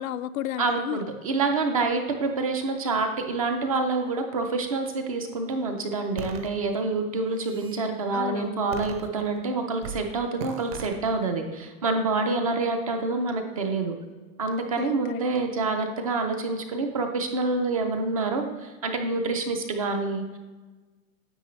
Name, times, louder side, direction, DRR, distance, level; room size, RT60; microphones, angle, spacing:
voice 1, 0.0-1.1 8.1-8.9 12.3-12.5 14.8-15.2, left 11 dB, 70° left, 13 dB, 0.5 m, -34 dB
voice 2, 0.6-13.9 14.4-20.4, right 3 dB, 25° right, 5 dB, 0.4 m, -27 dB
sound 1, 6.2-6.5 7.2-7.8 8.7-9.4 9.8-10.0 10.4-10.9, right 6 dB, 45° right, 0.9 m, -37 dB
9.9 x 7.6 x 3.1 m, 1.3 s
supercardioid pair, 165°, 43 cm